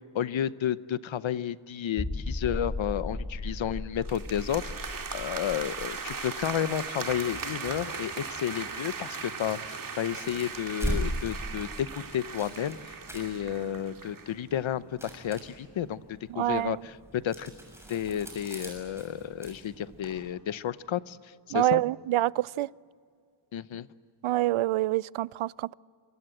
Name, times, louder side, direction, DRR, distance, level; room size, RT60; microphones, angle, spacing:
voice 1, 0.1-11.9 12.1-17.5 17.9-21.8 23.5-23.9, left 10 dB, 70° left, 0.9 m, -32 dB
sound 1, 2.0-7.4 7.7-7.8 8.3-8.4, left 2 dB, 20° left, 1.4 m, -37 dB
sound 2, 4.0-14.3, right 5 dB, 45° right, 2.4 m, -38 dB
sound 3, 10.0-20.2, right 1 dB, 5° right, 6.8 m, -39 dB
voice 2, 16.3-16.8 21.5-22.7 24.2-25.7, right 15 dB, 80° right, 0.5 m, -26 dB
27.0 x 24.5 x 7.8 m
wide cardioid pair, 155°, 48 cm